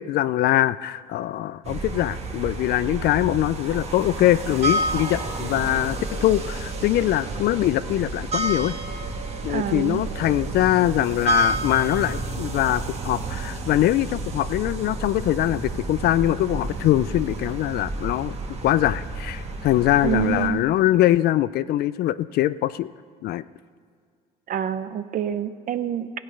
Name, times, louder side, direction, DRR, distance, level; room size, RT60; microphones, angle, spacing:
voice 1, 0.0-8.8 9.4-18.3 18.6-22.9 23.2-23.4, left 14 dB, 70° left, 17 dB, 0.4 m, -22 dB
sound 1, 1.6-20.5, right 2 dB, 40° right, 1.5 m, -30 dB
voice 2, 9.5-10.0 20.0-20.6 24.5-26.1, right 9 dB, 55° right, 12 dB, 0.6 m, -27 dB
16.0 x 8.6 x 5.4 m, 2.1 s
cardioid pair, 110°, 17 cm